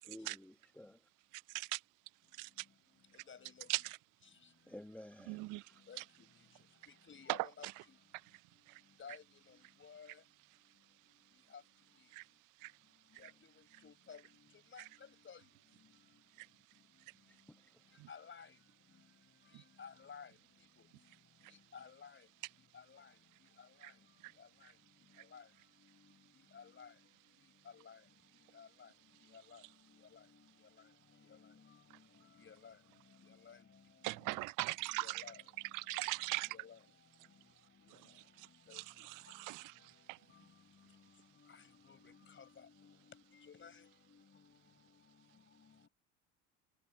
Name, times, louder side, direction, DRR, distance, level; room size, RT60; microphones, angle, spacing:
voice 1, 0.1-1.0 4.7-5.6 17.3-17.7, left 1 dB, 5° left, 1.2 m, -53 dB
voice 2, 1.3-1.8 2.3-2.7 3.7-4.0 5.3-6.0 7.3-7.7 8.3-8.4 8.7-8.8 12.1-12.3 12.6-12.7 13.2-13.3 14.8-14.9 16.4-16.5 18.0-18.1 19.5-19.6 21.4-21.5 23.8-23.9 24.2-24.3 25.1-25.3 34.0-35.2 35.7-36.5 37.9-40.2, right 24 dB, 65° right, 0.5 m, -41 dB
voice 3, 3.1-3.7 5.9-6.3 6.9-8.0 9.0-10.2 11.5-11.6 13.2-15.5 15.8-16.2 18.1-18.6 19.4-20.4 20.8-20.9 21.5-22.3 22.7-23.1 23.6-24.0 24.4-24.7 25.1-25.5 25.8-27.1 27.6-28.0 28.5-28.9 29.2-34.4 34.9-35.9 36.4-36.8 37.7-38.2 38.7-39.4 39.9-45.9, left 6 dB, 35° left, 6.1 m, -57 dB
supercardioid pair, 75°, 35 cm